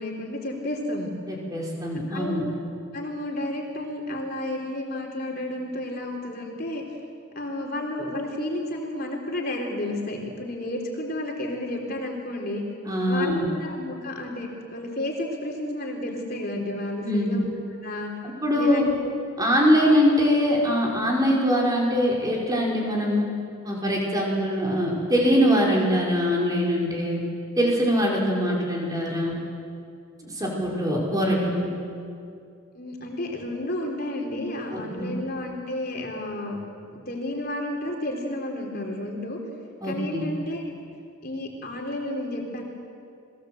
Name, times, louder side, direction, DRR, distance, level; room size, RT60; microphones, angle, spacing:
voice 1, 0.0-1.1 2.1-2.4 2.9-6.8 7.4-12.6 13.1-17.5 17.8-18.1 18.6-19.1 32.7-36.6 36.9-39.4 39.8-40.7 41.2-42.6, left 1 dB, 45° left, 0 dB, 3.7 m, -31 dB
voice 2, 1.3-2.4 12.8-13.5 17.0-17.3 18.4-18.9 19.4-23.2 23.6-27.2 27.6-29.4 30.2-31.7 34.7-35.1 39.8-40.2, equal, 20° right, -3 dB, 5.2 m, -23 dB
29.0 x 21.0 x 7.9 m, 2.4 s
head